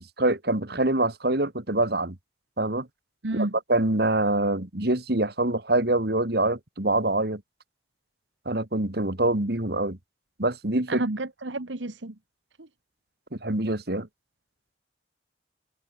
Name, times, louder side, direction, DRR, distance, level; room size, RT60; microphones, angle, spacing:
voice 1, 0.0-2.2 2.6-2.9 3.3-7.4 8.5-10.0 10.4-11.0 13.4-14.1, right 2 dB, 55° right, 2.3 m, -25 dB
voice 2, 3.2-3.5 10.9-12.2 12.6-12.7, right 2 dB, 75° right, 1.6 m, -30 dB
head